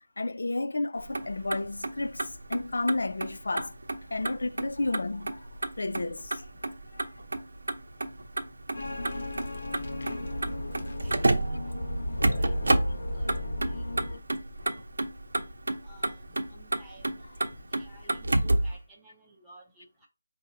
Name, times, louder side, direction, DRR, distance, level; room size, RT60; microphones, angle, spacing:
voice 1, 0.2-3.7 4.1-5.5 5.8-6.5 6.9-7.1 14.6-14.7, left 2 dB, 70° left, 0.3 m, -32 dB
Motor vehicle (road), 1.0-18.8, right 2 dB, 75° right, 0.7 m, -31 dB
sound 1, 8.7-14.2, left 1 dB, 55° left, 1.2 m, -34 dB
voice 2, 11.0-11.4 11.6-12.8 13.1-14.2 15.8-20.1, right 1 dB, ahead, 0.5 m, -55 dB
4.9 x 2.7 x 2.6 m
figure-of-eight pair, 175°, 0 cm